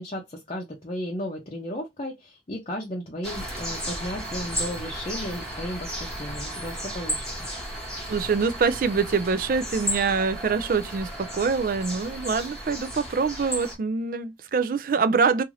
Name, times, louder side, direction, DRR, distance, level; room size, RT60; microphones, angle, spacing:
voice 1, 0.0-7.3, equal, 35° left, 0.6 m, -34 dB
sound 1, 3.2-13.8, equal, 5° left, 1.1 m, -34 dB
voice 2, 8.1-15.4, right 5 dB, 50° right, 0.3 m, -25 dB
2.7 x 2.5 x 3.1 m
head